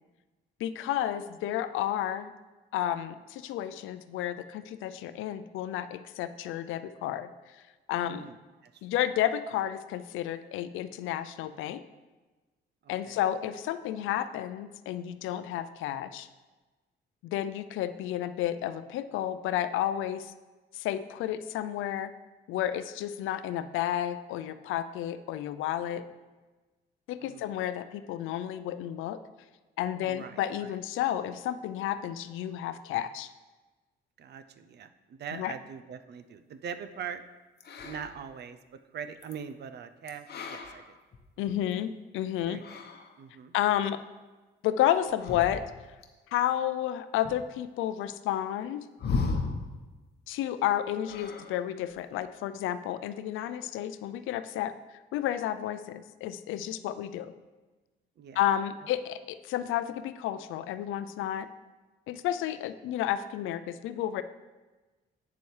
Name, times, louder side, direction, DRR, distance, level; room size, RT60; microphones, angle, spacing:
voice 1, 0.6-2.3 2.7-7.3 7.9-8.2 8.8-11.8 12.9-16.3 17.2-20.3 20.7-22.1 22.5-26.0 27.1-29.2 29.8-33.3 35.3-35.5 41.4-42.6 43.5-44.0 44.6-45.6 46.3-48.8 50.3-54.7 55.1-57.3 58.3-61.5 62.1-64.2, left 11 dB, 90° left, 12 dB, 0.4 m, -31 dB
voice 2, 8.0-8.4 8.6-8.8 12.8-13.2 27.2-27.5 30.0-30.7 34.2-37.2 37.8-41.0 41.5-41.6 42.5-42.6 43.2-43.5 58.2-58.4, right 7 dB, 55° right, 11 dB, 0.5 m, -42 dB
sound 1, 37.6-38.3 39.2-39.3 40.1-41.7 42.4-43.1 45.1-46.0 47.2-47.3 49.0-49.8 51.0-51.6 51.9-52.2, left 4 dB, 55° left, 0.9 m, -35 dB
8.2 x 7.0 x 3.2 m, 1.2 s
cardioid pair, 90°, 20 cm